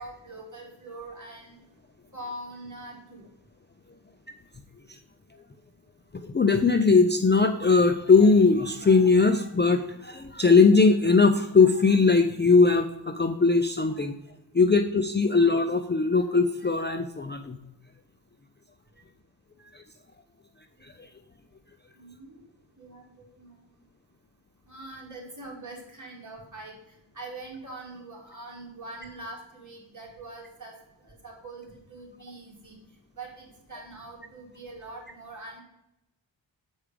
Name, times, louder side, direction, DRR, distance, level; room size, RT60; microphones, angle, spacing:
voice 1, 0.0-1.6 2.1-3.3 22.0-22.4 22.8-23.6 24.7-30.8 31.0-32.8 33.1-35.6, right 2 dB, 40° right, -2 dB, 2.5 m, -43 dB
voice 2, 6.1-14.1 14.5-17.6 19.7-19.8 20.8-20.9, left 4 dB, 25° left, 6 dB, 0.4 m, -20 dB
7.2 x 4.7 x 5.0 m, 0.88 s
wide cardioid pair, 95°, 47 cm